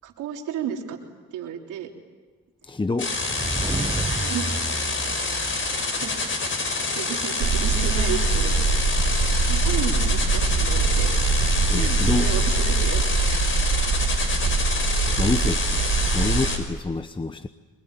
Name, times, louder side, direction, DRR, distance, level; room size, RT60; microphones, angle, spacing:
voice 1, 0.0-1.0 1.3-1.9 4.0-4.5 5.9-6.1 6.4-8.5 9.5-11.1 11.7-13.4, right 8 dB, 90° right, 2 dB, 3.6 m, -33 dB
voice 2, 2.6-3.2 11.7-12.3 15.2-15.8 16.1-17.5, left 3 dB, 15° left, 10 dB, 0.9 m, -27 dB
sound 1, 3.0-16.6, left 3 dB, 40° left, 5.3 m, -27 dB
sound 2, 3.2-6.2, right 3 dB, 15° right, 1.0 m, -31 dB
sound 3, 7.4-16.5, right 4 dB, 60° right, 2.0 m, -23 dB
26.0 x 22.0 x 10.0 m, 1.3 s
cardioid pair, 90°, 30 cm